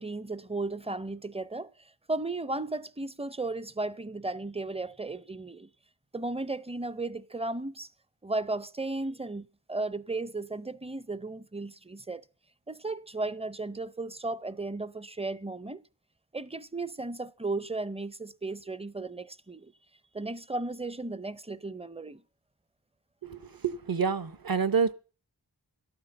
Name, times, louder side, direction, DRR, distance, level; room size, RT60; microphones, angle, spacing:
voice 1, 0.0-1.7 2.1-5.7 6.1-7.9 8.2-12.2 12.7-15.8 16.3-19.7 20.1-22.2, right 2 dB, 15° right, 0.5 m, -35 dB
voice 2, 23.2-24.9, right 5 dB, 55° right, 0.9 m, -28 dB
12.0 x 8.8 x 6.9 m
wide cardioid pair, 40°, 42 cm